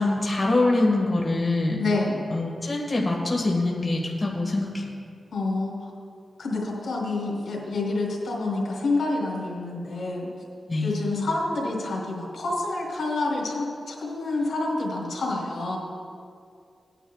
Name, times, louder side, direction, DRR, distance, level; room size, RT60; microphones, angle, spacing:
voice 1, 0.0-1.8 2.3-4.9 10.7-10.9, left 2 dB, 25° left, -2 dB, 1.7 m, -24 dB
voice 2, 1.8-2.2 5.3-5.9 6.4-10.3 10.8-15.8, left 2 dB, 80° left, -3 dB, 3.0 m, -28 dB
18.0 x 10.0 x 2.4 m, 2.3 s
wide cardioid pair, 85°, 0 cm